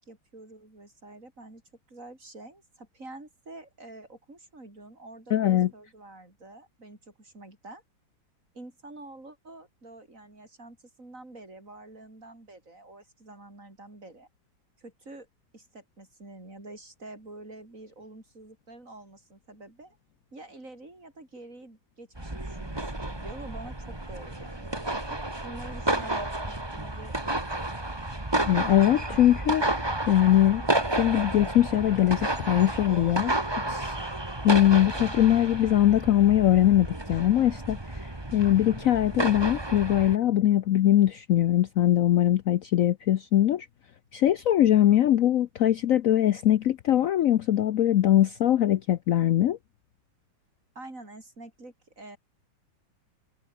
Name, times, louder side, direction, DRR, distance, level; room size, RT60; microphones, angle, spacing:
voice 1, 0.0-1.6 1.9-7.8 8.5-14.3 14.8-15.3 15.5-20.0 20.3-27.7 50.8-52.2, right 2 dB, 40° right, 6.9 m, -47 dB
voice 2, 5.3-5.7 28.5-29.6 30.1-30.6 30.9-33.3 33.7-33.9 34.4-37.8 38.3-43.7 44.1-49.6, left 12 dB, 80° left, 0.7 m, -22 dB
sound 1, 22.2-40.2, right 1 dB, 10° right, 2.2 m, -31 dB
omnidirectional pair, 2.1 m